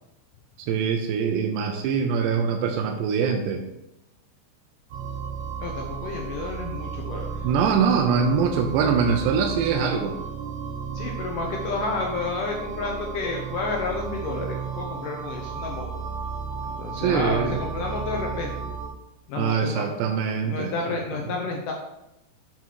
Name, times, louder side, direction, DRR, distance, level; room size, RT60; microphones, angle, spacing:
voice 1, 0.6-3.6 7.4-10.2 17.0-17.6 19.4-21.0, right 6 dB, 80° right, 3 dB, 2.9 m, -23 dB
sound 1, 4.9-18.9, right 6 dB, 65° right, 1.9 m, -34 dB
voice 2, 5.6-7.5 10.9-16.0 16.7-18.7 19.3-19.9 20.4-21.7, left 3 dB, 75° left, 0 dB, 1.9 m, -31 dB
7.6 x 5.8 x 4.6 m, 0.87 s
omnidirectional pair, 5.0 m